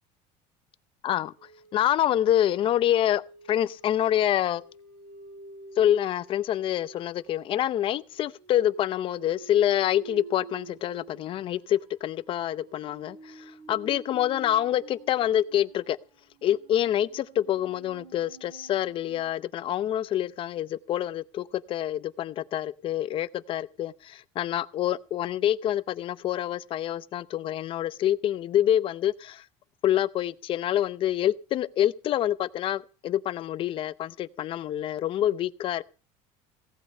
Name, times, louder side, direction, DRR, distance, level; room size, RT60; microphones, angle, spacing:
sound 1, 1.4-19.3, right 4 dB, 75° right, 5.1 m, -50 dB
voice 1, 1.7-3.2 3.5-4.6 5.8-16.0 16.4-29.4 29.8-35.8, left 11 dB, 40° left, 0.6 m, -26 dB
17.0 x 8.2 x 6.5 m
cardioid pair, 160°, 14 cm